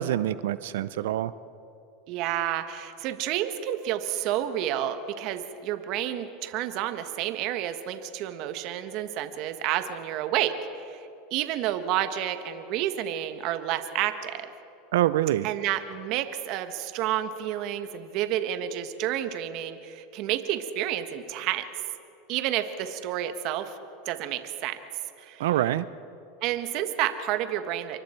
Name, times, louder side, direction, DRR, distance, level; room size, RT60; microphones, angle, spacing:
voice 1, 0.0-1.3 14.9-15.5 25.4-25.8, right 13 dB, 80° right, 16 dB, 0.6 m, -25 dB
voice 2, 2.1-11.0 11.3-14.5 15.4-21.7 22.3-23.7 24.0-24.8 25.2-25.5 26.4-28.0, right 11 dB, 55° right, 8 dB, 1.6 m, -30 dB
28.5 x 24.0 x 4.6 m, 2.7 s
hypercardioid pair, 105°, 0 cm